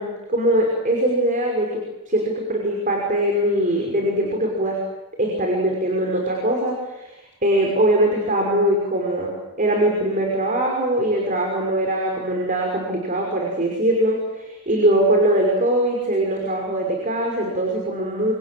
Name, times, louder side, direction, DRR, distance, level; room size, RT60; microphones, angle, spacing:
voice 1, 0.0-4.8 5.2-9.3 9.6-18.3, right 1 dB, 35° right, 0 dB, 5.6 m, -21 dB
28.5 x 26.0 x 7.8 m, 0.94 s
head